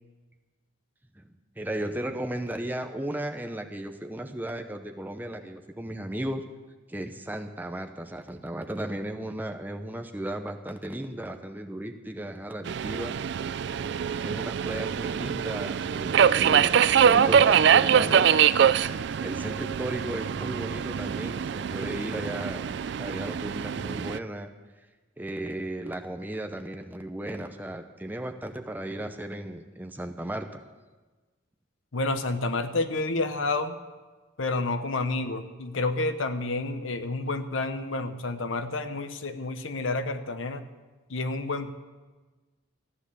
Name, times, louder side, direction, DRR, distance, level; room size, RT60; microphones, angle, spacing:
voice 1, 1.2-6.4 6.9-13.2 14.2-16.7 17.0-18.3 19.2-22.7 23.0-24.5 25.2-30.6, right 1 dB, 10° right, 5 dB, 0.7 m, -35 dB
Subway metro underground, 12.7-24.2, right 8 dB, 55° right, 0.3 m, -24 dB
voice 2, 31.9-33.8 34.4-40.6 41.1-41.7, left 2 dB, 75° left, 10 dB, 0.9 m, -29 dB
14.0 x 9.7 x 6.7 m, 1.3 s
head